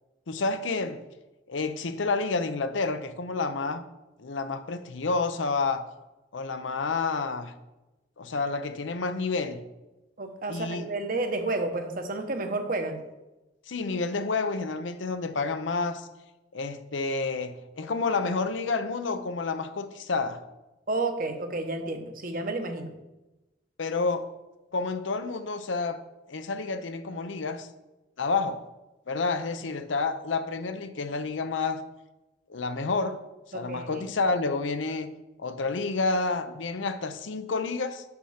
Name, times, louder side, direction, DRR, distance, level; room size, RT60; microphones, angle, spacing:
voice 1, 0.3-1.0 1.5-3.8 4.2-5.8 6.3-7.5 8.2-9.6 10.5-10.9 13.7-16.1 16.5-20.4 23.8-24.3 24.7-26.0 26.3-27.7 28.2-28.6 29.1-31.8 32.5-33.2 33.5-35.1 35.4-38.0, left 3 dB, 90° left, 0.7 m, -29 dB
voice 2, 10.2-13.0 20.9-22.9 33.5-34.0, right 2 dB, 50° right, 0.9 m, -31 dB
6.5 x 5.9 x 5.7 m
head